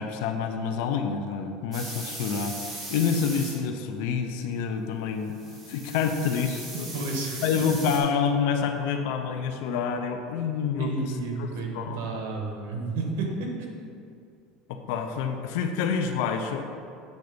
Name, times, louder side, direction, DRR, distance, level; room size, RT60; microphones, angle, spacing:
voice 1, 0.0-5.4 5.7-6.9 7.4-11.1 11.4-11.5 11.7-12.1 14.7-16.7, left 6 dB, 75° left, 6 dB, 0.6 m, -28 dB
sound 1, 1.7-3.6 5.3-8.0, right 2 dB, 25° right, 1.8 m, -38 dB
voice 2, 6.9-7.4 10.8-13.8, right 3 dB, 90° right, 1 dB, 1.3 m, -31 dB
8.2 x 3.9 x 5.1 m, 2.4 s
cardioid pair, 145°, 0 cm